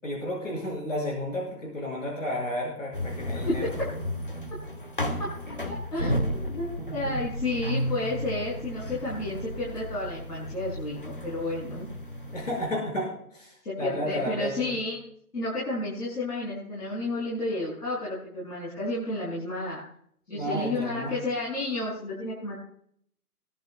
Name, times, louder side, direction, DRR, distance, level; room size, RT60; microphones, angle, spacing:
voice 1, 0.0-3.7 6.8-7.1 12.3-14.8 20.3-21.2, left 1 dB, 55° left, -2 dB, 5.9 m, -32 dB
sound 1, 2.9-12.7, equal, 35° left, 0.6 m, -33 dB
voice 2, 5.7-11.9 13.6-15.0 15.3-19.8 20.3-22.6, left 2 dB, 90° left, -7 dB, 6.4 m, -31 dB
23.5 x 12.0 x 2.3 m, 0.66 s
hypercardioid pair, 175°, 46 cm